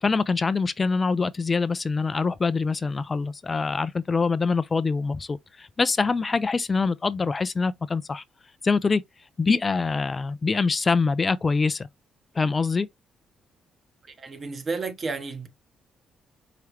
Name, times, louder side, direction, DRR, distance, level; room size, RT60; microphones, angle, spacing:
voice 1, 0.0-8.2 8.6-9.0 9.4-11.9 12.3-12.9, left 4 dB, 30° left, 0.3 m, -24 dB
voice 2, 14.0-15.5, right 4 dB, 40° right, 1.0 m, -32 dB
4.8 x 3.0 x 3.2 m
cardioid pair, 90°, 0 cm